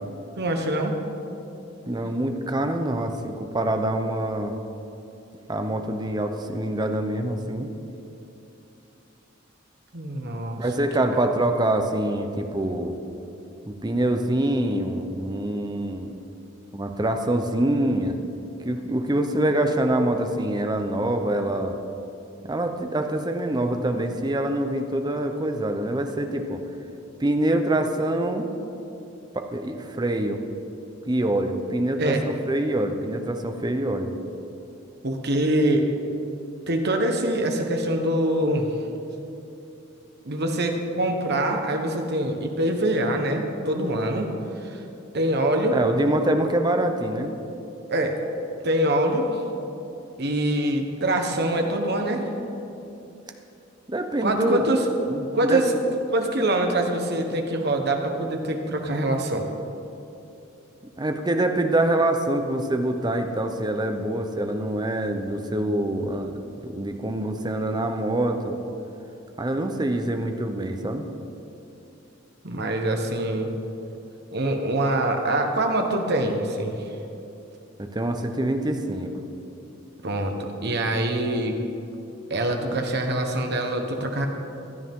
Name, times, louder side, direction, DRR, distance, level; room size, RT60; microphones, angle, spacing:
voice 1, 0.4-1.0 9.9-10.6 11.1-11.2 32.0-32.2 35.0-35.9 36.7-38.8 40.2-44.3 44.6-44.8 45.1-45.7 47.9-48.1 48.6-49.4 50.2-52.2 54.2-54.8 55.3-55.7 56.1-59.5 72.4-73.5 74.3-76.9 80.0-81.6 82.3-84.3, right 1 dB, 60° right, 3 dB, 1.3 m, -24 dB
voice 2, 1.9-4.6 5.5-7.7 10.6-13.0 13.7-16.1 16.7-18.2 18.6-21.8 22.4-26.6 27.2-28.5 29.3-30.4 31.1-34.1 45.7-47.3 53.9-54.7 55.0-55.6 61.0-66.3 66.6-68.6 69.4-71.0 77.8-79.1, right 1 dB, 20° right, 6 dB, 0.8 m, -25 dB
16.0 x 12.0 x 3.8 m, 2.8 s
head